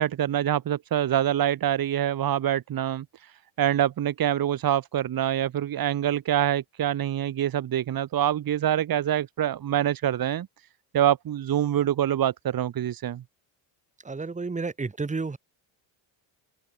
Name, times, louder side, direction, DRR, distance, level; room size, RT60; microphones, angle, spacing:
voice 1, 0.0-3.1 3.6-10.5 10.9-13.2, right 11 dB, 45° right, 6.0 m, -25 dB
voice 2, 14.0-15.4, right 4 dB, 15° right, 5.0 m, -31 dB
cardioid pair, 150°, 48 cm